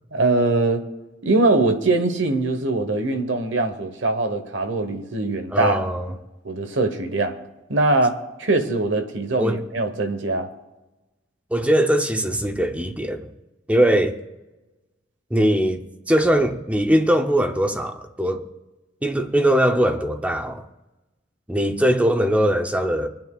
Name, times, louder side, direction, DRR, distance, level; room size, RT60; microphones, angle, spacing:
voice 1, 0.1-0.8 1.2-5.8 6.4-7.4 7.7-10.5, right 2 dB, 85° right, 1.2 m, -22 dB
voice 2, 5.5-6.1 9.4-9.6 11.5-13.3 13.7-14.2 15.3-15.8 16.1-18.4 19.0-20.6 21.5-23.1, equal, 5° right, 0.7 m, -20 dB
26.5 x 9.2 x 2.4 m
head